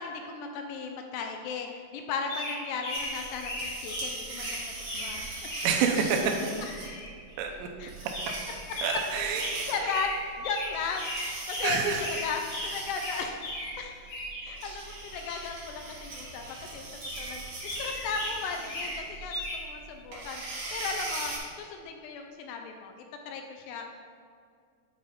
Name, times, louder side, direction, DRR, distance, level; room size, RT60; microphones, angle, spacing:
voice 1, 0.0-5.5 7.8-7.9 9.4-10.1 10.4-13.9 14.4-16.9 17.2-20.4 20.7-22.9 23.3-23.9, left 5 dB, 80° left, 4 dB, 2.6 m, -36 dB
sound 1, 2.2-7.4 8.1-15.5 16.1-16.6 17.0-19.7, left 1 dB, 60° left, 2.8 m, -38 dB
sound 2, 2.9-21.4, right 3 dB, 60° right, 3.4 m, -41 dB
voice 2, 5.6-6.3 7.4-7.7 8.8-9.9 11.6-12.0, right 6 dB, 80° right, 2 dB, 2.8 m, -28 dB
9.3 x 4.2 x 4.0 m, 2.2 s
omnidirectional pair, 5.1 m